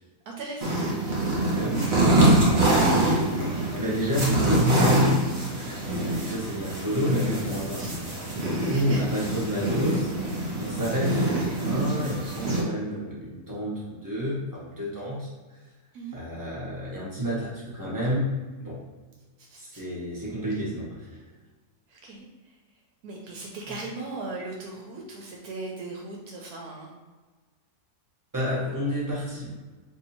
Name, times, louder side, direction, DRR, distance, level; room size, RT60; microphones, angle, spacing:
voice 1, 0.3-0.8 7.8-7.9 8.7-9.2 11.0-11.2 15.9-16.2 19.4-19.8 21.9-22.6 23.0-26.9, right 3 dB, 75° right, -1 dB, 1.1 m, -38 dB
sound 1, 0.6-12.6, right 2 dB, 45° right, 1.2 m, -25 dB
voice 2, 1.5-1.9 2.8-8.0 8.4-10.1 10.6-15.3 16.1-18.3 18.6-18.8 19.6-21.0 28.3-29.5, equal, 15° right, -7 dB, 1.0 m, -29 dB
3.3 x 2.7 x 4.2 m, 1.3 s
omnidirectional pair, 1.7 m